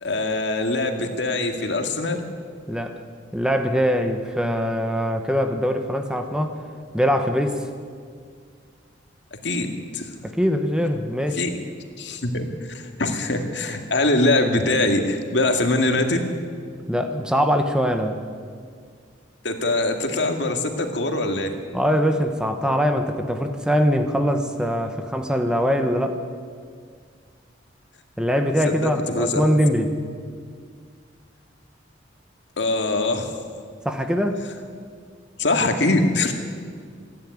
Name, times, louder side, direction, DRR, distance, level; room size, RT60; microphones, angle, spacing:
voice 1, 0.0-2.2 9.4-10.1 11.3-11.5 12.0-16.3 19.4-21.5 28.7-29.5 32.6-33.3 35.4-36.3, left 2 dB, 65° left, 5 dB, 2.1 m, -23 dB
voice 2, 2.7-3.0 3.3-6.6 6.9-7.6 10.2-11.4 16.9-18.2 21.7-26.2 28.2-29.9 33.8-34.4, equal, 5° right, 6 dB, 1.1 m, -22 dB
27.0 x 11.0 x 9.6 m, 2.1 s
head